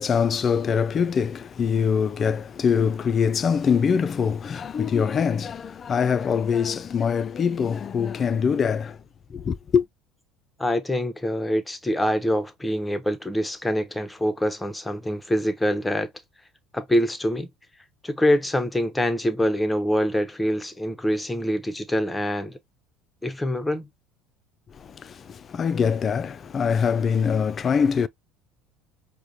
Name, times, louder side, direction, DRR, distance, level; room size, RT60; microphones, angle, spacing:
voice 1, 0.0-9.0 9.3-9.9 24.7-28.1, left 6 dB, 40° left, 0.3 m, -23 dB
voice 2, 10.6-16.1 16.7-17.5 18.0-22.6 23.2-23.9, equal, 10° left, 0.7 m, -25 dB
4.8 x 2.1 x 2.7 m
hypercardioid pair, 75°, 0 cm